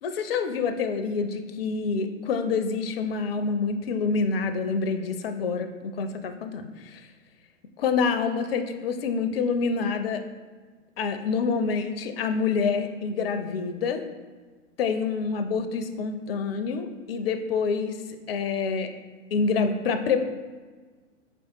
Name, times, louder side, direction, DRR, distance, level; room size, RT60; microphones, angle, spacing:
voice 1, 0.0-7.0 7.8-10.2 11.0-14.0 14.8-18.0 18.3-18.9 19.3-20.3, left 5 dB, 50° left, 8 dB, 0.4 m, -27 dB
5.2 x 3.4 x 2.8 m, 1.4 s
figure-of-eight pair, 110°, 39 cm